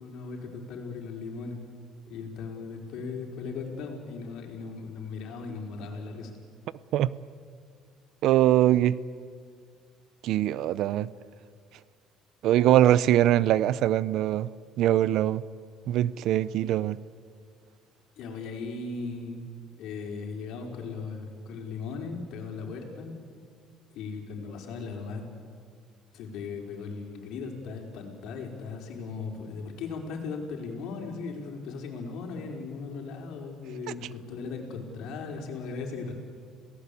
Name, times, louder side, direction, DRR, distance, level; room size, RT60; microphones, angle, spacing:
voice 1, 0.0-1.6 2.1-6.3 18.2-19.5 19.8-23.1 23.9-25.2 26.1-36.1, left 4 dB, 70° left, 4.6 m, -37 dB
voice 2, 8.2-9.0 10.2-11.1 12.4-14.5 14.8-15.4 15.9-17.0, right 12 dB, 70° right, 0.7 m, -22 dB
28.0 x 18.0 x 8.5 m
cardioid pair, 115°, 0 cm